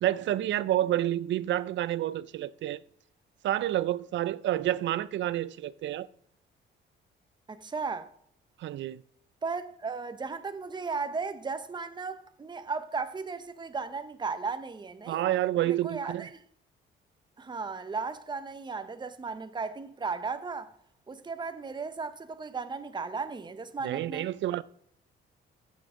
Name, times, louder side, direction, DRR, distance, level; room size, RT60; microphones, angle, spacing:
voice 1, 0.0-2.8 3.4-6.1 8.6-9.0 15.1-16.3 23.8-24.6, right 13 dB, 70° right, 0.5 m, -29 dB
voice 2, 7.5-8.1 9.4-15.2 15.7-16.4 17.4-20.7 21.1-24.3, right 4 dB, 20° right, 0.8 m, -35 dB
14.5 x 7.2 x 3.7 m
cardioid pair, 90°, 20 cm